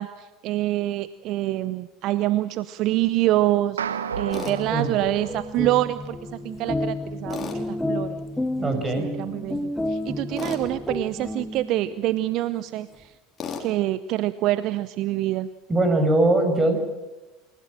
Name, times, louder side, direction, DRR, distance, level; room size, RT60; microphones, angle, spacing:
voice 1, 0.0-8.2 8.6-13.1 13.6-15.5, right 15 dB, 55° right, 16 dB, 0.7 m, -26 dB
sound 1, 3.8-6.3, right 7 dB, 85° right, 1.0 m, -33 dB
Tools, 4.3-4.6 7.3-7.6 10.4-10.6 13.4-13.7, left 6 dB, 35° left, 4.1 m, -33 dB
sound 2, 4.3-11.9, left 1 dB, 5° left, 1.5 m, -31 dB
voice 2, 8.6-9.1 15.7-16.8, right 2 dB, 20° right, 6 dB, 6.2 m, -21 dB
27.5 x 16.5 x 7.5 m, 1.1 s
hypercardioid pair, 80°, 0 cm